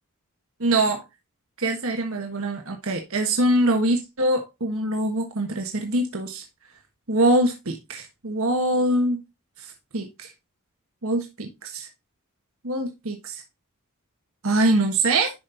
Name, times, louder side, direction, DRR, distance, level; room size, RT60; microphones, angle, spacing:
voice 1, 0.6-1.0 1.6-6.4 7.1-9.2 9.9-10.3 11.0-11.9 12.6-13.4 14.4-15.3, right 1 dB, 65° right, 4 dB, 1.3 m, -23 dB
11.0 x 5.4 x 2.6 m, 0.24 s
head